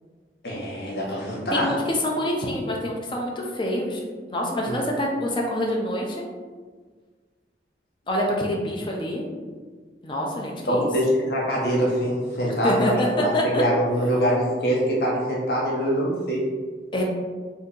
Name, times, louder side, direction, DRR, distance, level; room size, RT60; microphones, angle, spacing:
voice 1, 0.4-1.7 4.6-4.8 10.7-16.4, equal, 60° left, -4 dB, 0.7 m, -24 dB
voice 2, 1.5-4.0 4.3-6.2 8.1-9.2 10.0-10.9 12.6-13.1 13.3-13.6 16.9-17.0, left 1 dB, 25° left, -1 dB, 0.4 m, -26 dB
2.6 x 2.6 x 3.7 m, 1.5 s
head